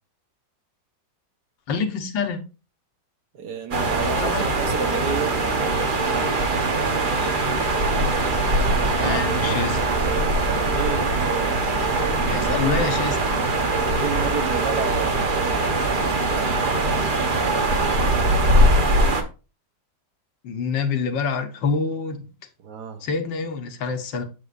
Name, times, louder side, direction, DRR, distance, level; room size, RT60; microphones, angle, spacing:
voice 1, 1.7-2.4 4.0-4.4 9.0-9.8 12.3-13.2 20.4-22.3 23.0-24.2, left 5 dB, 80° left, 1.8 m, -26 dB
voice 2, 3.3-5.4 9.0-9.2 10.6-12.9 13.9-15.7 22.6-23.0, right 6 dB, 65° right, 1.4 m, -31 dB
sound 1, 3.7-19.2, right 2 dB, 40° right, 0.8 m, -22 dB
8.3 x 7.1 x 2.5 m
omnidirectional pair, 2.0 m